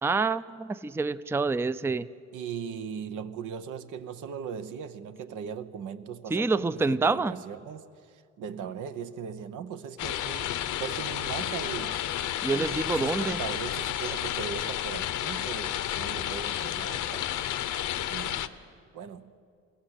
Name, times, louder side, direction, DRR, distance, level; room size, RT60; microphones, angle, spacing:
voice 1, 0.0-2.1 6.3-7.3 12.4-13.4, right 3 dB, 10° right, 0.4 m, -27 dB
voice 2, 2.3-12.0 12.5-17.3 18.1-18.5 18.9-19.3, right 7 dB, 80° right, 1.1 m, -39 dB
sound 1, 10.0-18.5, left 11 dB, 80° left, 0.9 m, -31 dB
22.5 x 17.5 x 8.2 m
cardioid pair, 90°, 30 cm